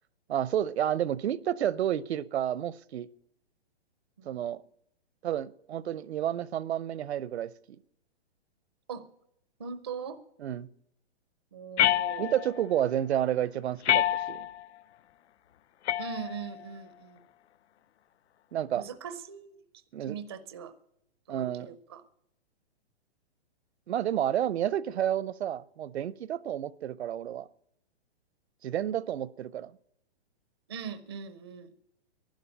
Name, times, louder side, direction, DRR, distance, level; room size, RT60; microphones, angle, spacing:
voice 1, 0.3-3.1 4.3-4.6 5.2-7.5 10.4-10.7 12.2-14.5 18.5-18.9 19.9-20.2 21.3-21.8 23.9-27.5 28.6-29.7, right 10 dB, 75° right, 0.6 m, -30 dB
voice 2, 9.6-10.2 11.5-12.3 16.0-17.2 18.7-19.6 20.1-20.7 21.3-22.0 30.7-31.7, right 7 dB, 25° right, 0.4 m, -40 dB
sound 1, 11.8-12.7 13.8-14.7 15.9-16.7, left 12 dB, 85° left, 0.5 m, -27 dB
11.5 x 10.5 x 8.9 m
hypercardioid pair, 175°, 33 cm